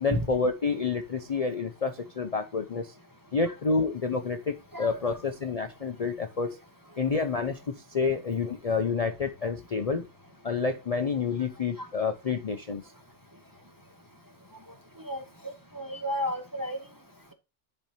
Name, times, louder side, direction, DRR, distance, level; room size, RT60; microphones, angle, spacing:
voice 1, 0.0-2.9 3.3-6.6 7.0-7.6 7.9-10.1 10.4-12.8, left 4 dB, 40° left, 6 dB, 0.6 m, -29 dB
voice 2, 4.7-5.2 11.8-11.9 15.1-15.2 15.7-16.8, equal, 20° right, 5 dB, 0.8 m, -32 dB
10.5 x 4.4 x 2.8 m, 0.28 s
omnidirectional pair, 1.2 m